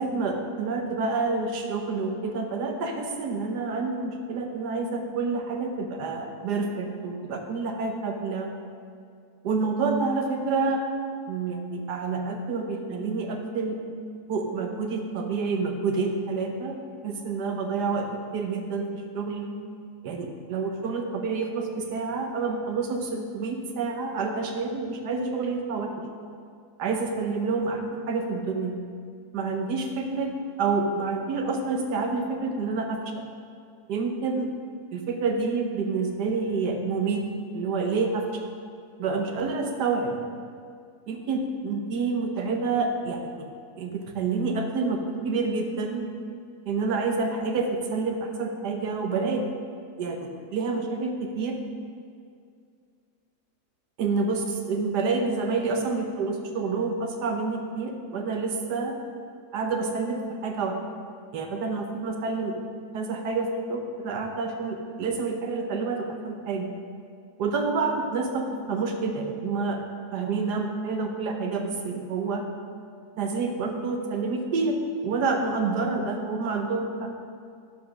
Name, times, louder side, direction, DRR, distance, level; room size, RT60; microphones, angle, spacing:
voice 1, 0.0-8.5 9.4-10.8 11.3-13.8 14.3-16.8 17.0-18.1 18.3-18.9 19.1-19.5 20.0-25.9 26.8-27.8 28.1-28.8 29.3-30.3 30.6-33.0 33.9-34.5 34.9-37.2 37.5-38.2 39.0-40.2 41.1-43.5 43.8-46.0 46.7-49.4 50.0-51.6 54.0-58.9 59.5-60.7 61.3-62.5 62.9-66.7 67.4-69.8 70.1-72.4 73.2-74.8 75.0-77.1, right 4 dB, 85° right, 3 dB, 1.6 m, -28 dB
10.5 x 5.2 x 6.0 m, 2.2 s
omnidirectional pair, 1.7 m